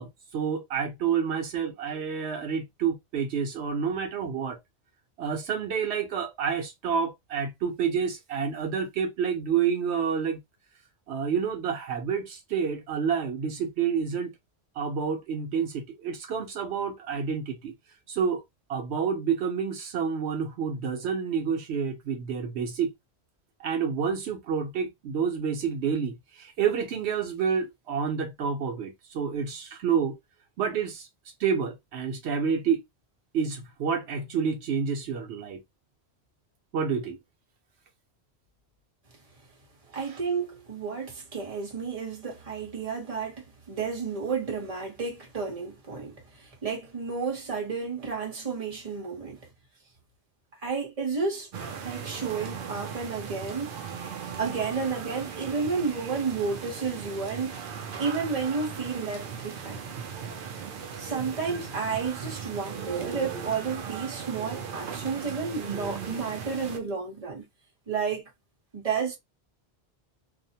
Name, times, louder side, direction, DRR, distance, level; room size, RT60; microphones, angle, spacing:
voice 1, 0.0-4.6 5.2-10.4 11.1-14.3 14.8-17.7 18.1-18.4 18.7-22.9 23.6-30.2 30.6-31.1 31.4-32.8 33.3-35.6 36.7-37.2 40.0-40.2, right 6 dB, 85° right, 0.9 m, -29 dB
voice 2, 39.9-49.5 50.6-51.5 51.8-53.7 54.4-57.7 58.0-59.8 61.0-67.4 67.9-68.3 68.7-69.1, right 5 dB, 35° right, 1.0 m, -31 dB
sound 1, 51.5-66.8, right 6 dB, 60° right, 0.7 m, -38 dB
2.5 x 2.1 x 2.7 m
omnidirectional pair, 1.1 m